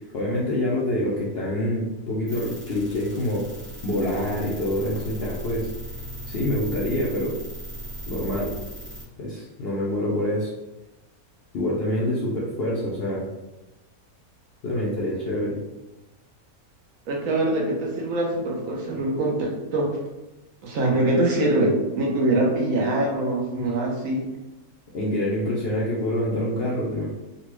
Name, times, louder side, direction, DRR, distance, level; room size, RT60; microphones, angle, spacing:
voice 1, 0.1-3.5 3.8-5.7 6.3-7.3 8.1-8.5 9.2-10.5 11.5-13.2 14.6-15.6 23.6-23.7 24.9-27.1, left 1 dB, 60° left, -5 dB, 0.6 m, -26 dB
sound 1, 2.3-9.0, equal, 10° right, 0.7 m, -37 dB
voice 2, 17.1-19.9 20.6-24.3, right 1 dB, 65° right, 0 dB, 1.0 m, -23 dB
3.9 x 2.2 x 3.0 m, 1.0 s
omnidirectional pair, 1.6 m